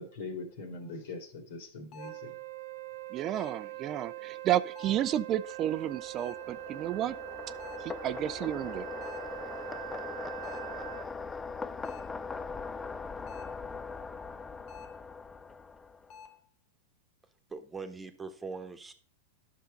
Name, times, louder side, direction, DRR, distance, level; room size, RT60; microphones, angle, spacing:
voice 1, 0.0-2.3, left 3 dB, 70° left, 6 dB, 2.7 m, -42 dB
sound 1, 0.8-0.9 1.9-2.3 3.3-3.7 4.7-5.1 6.2-6.5 7.6-8.0 9.0-9.4 10.4-10.8 11.8-12.2 13.3-13.7 14.7-15.1 16.1-16.5, left 6 dB, 40° left, 1.3 m, -51 dB
Wind instrument woodwind instrument, 2.0-11.1, right 17 dB, 65° right, 0.9 m, -43 dB
voice 2, 3.1-7.2 7.8-8.9, right 11 dB, 35° right, 15 dB, 0.5 m, -31 dB
sound 2, 5.5-16.2, left 4 dB, 15° left, 0.5 m, -41 dB
voice 3, 17.5-18.9, right 4 dB, 15° right, 7 dB, 1.3 m, -41 dB
10.0 x 6.5 x 5.2 m, 0.43 s
hypercardioid pair, 120°, 0 cm